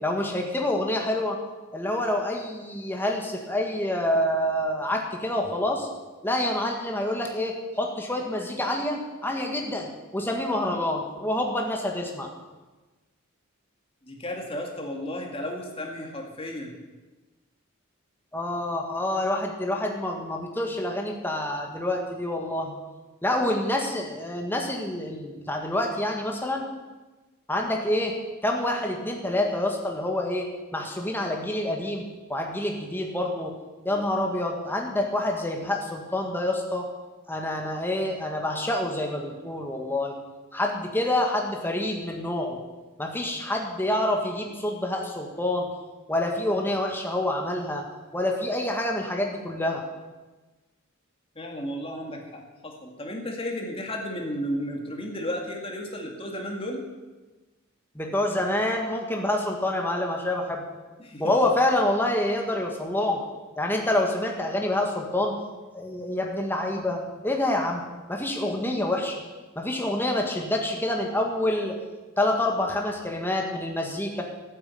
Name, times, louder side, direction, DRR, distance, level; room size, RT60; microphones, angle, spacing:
voice 1, 0.0-1.4 1.7-5.9 6.2-12.3 18.3-22.8 23.2-26.6 27.5-28.2 28.4-32.0 32.3-33.5 33.9-36.9 37.3-40.2 40.5-42.6 43.0-45.7 46.1-47.9 48.1-49.8 58.0-60.6 61.2-63.2 63.6-65.3 65.7-67.8 68.1-69.2 69.6-71.8 72.2-74.2, left 1 dB, 10° left, 1 dB, 1.9 m, -27 dB
voice 2, 14.0-16.7 33.9-34.0 51.4-56.9 61.0-61.3, equal, 25° left, 1 dB, 2.3 m, -33 dB
12.0 x 9.3 x 8.6 m, 1.2 s
head